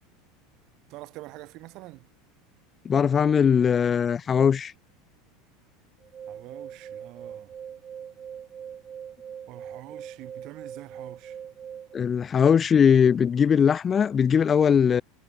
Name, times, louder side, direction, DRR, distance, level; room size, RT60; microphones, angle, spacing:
voice 1, 0.9-2.1 6.3-7.5 9.5-11.4, right 20 dB, 50° right, 3.7 m, -45 dB
voice 2, 2.8-4.7 11.9-15.0, left 7 dB, 25° left, 0.4 m, -20 dB
sound 1, 6.0-12.0, right 8 dB, 25° right, 1.1 m, -41 dB
supercardioid pair, 140°, 0 cm